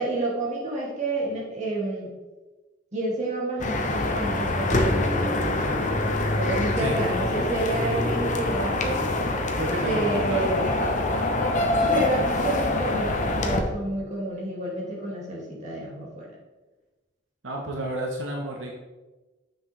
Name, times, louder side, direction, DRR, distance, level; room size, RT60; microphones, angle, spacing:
voice 1, 0.0-2.1 2.9-5.8 6.4-9.1 9.8-10.7 11.6-16.3, right 2 dB, 40° right, -5 dB, 2.3 m, -29 dB
sound 1, 3.6-13.6, left 2 dB, 40° left, 0.8 m, -25 dB
voice 2, 9.6-11.8 13.8-14.0 17.4-18.7, right 1 dB, 80° right, -1 dB, 1.0 m, -32 dB
7.3 x 6.3 x 3.3 m, 1.2 s
head